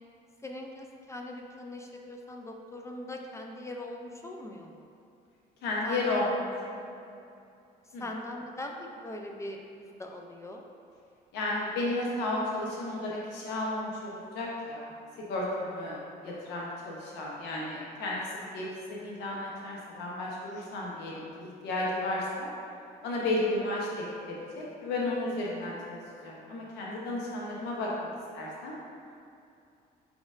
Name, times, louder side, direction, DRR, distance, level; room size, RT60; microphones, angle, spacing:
voice 1, 0.4-4.9 5.8-6.3 8.0-10.7, left 1 dB, 15° left, 1 dB, 0.3 m, -41 dB
voice 2, 5.6-6.3 6.7-7.2 7.9-8.0 11.3-14.8 15.3-16.0 16.2-22.5 23.0-28.1 28.3-28.7, left 2 dB, 80° left, -4 dB, 0.8 m, -33 dB
4.7 x 4.1 x 2.5 m, 2.5 s
cardioid pair, 110°, 17 cm